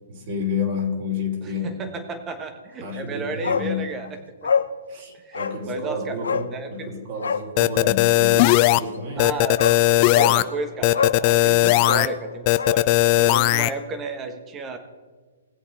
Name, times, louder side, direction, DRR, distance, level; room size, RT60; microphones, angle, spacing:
voice 1, 0.1-1.8 2.8-3.9 4.9-9.3, left 4 dB, 45° right, 0 dB, 3.2 m, -30 dB
voice 2, 1.4-4.5 5.2-6.2 6.5-6.9 9.2-9.6 10.0-12.9 13.2-14.8, right 2 dB, 15° right, 8 dB, 1.3 m, -32 dB
Bark, 3.4-3.7 4.0-4.1 4.4-4.7 5.3-5.6 6.2-6.5 7.2-7.5 9.1-9.2 9.6-9.8 10.1-10.4 10.9-11.2 11.8-12.8 13.1-13.2, left 6 dB, 90° left, 0.8 m, -25 dB
sound 1, 7.6-8.8 9.2-10.4 10.8-12.1 12.5-13.7, left 17 dB, 30° left, 0.4 m, -17 dB
19.5 x 7.7 x 4.4 m, 1.4 s
hypercardioid pair, 155°, 0 cm